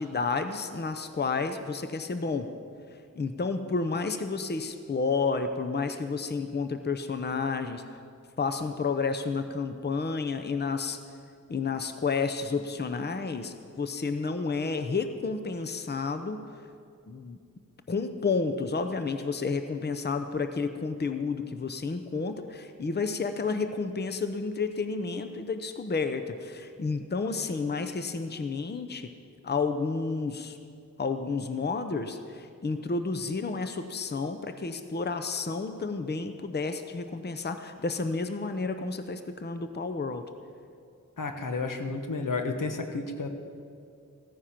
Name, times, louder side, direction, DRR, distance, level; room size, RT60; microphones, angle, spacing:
voice 1, 0.0-2.5 3.2-8.0 8.4-11.0 11.5-16.6 17.1-17.4 17.9-29.1 29.4-30.6 31.0-40.2, left 4 dB, 30° left, 8 dB, 0.7 m, -31 dB
voice 2, 41.2-43.3, left 3 dB, 80° left, 5 dB, 1.2 m, -31 dB
15.0 x 9.6 x 5.9 m, 2.3 s
wide cardioid pair, 75°, 32 cm